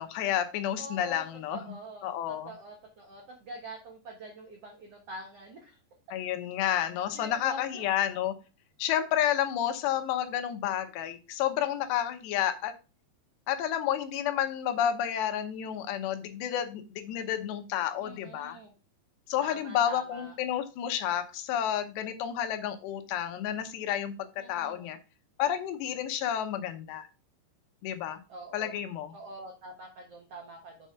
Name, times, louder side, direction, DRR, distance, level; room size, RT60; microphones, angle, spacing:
voice 1, 0.0-1.6 2.0-2.5 6.1-8.3 8.8-12.7 13.5-18.6 19.3-25.0 25.4-27.1 27.8-28.2 28.5-29.1, left 10 dB, 80° left, 7 dB, 3.0 m, -30 dB
voice 2, 0.8-5.8 6.6-6.7 7.1-7.9 18.0-18.7 19.4-20.3 24.4-24.9 28.3-28.8 29.1-30.9, right 1 dB, 75° right, 1 dB, 1.4 m, -45 dB
7.3 x 4.9 x 5.6 m, 0.31 s
omnidirectional pair, 5.1 m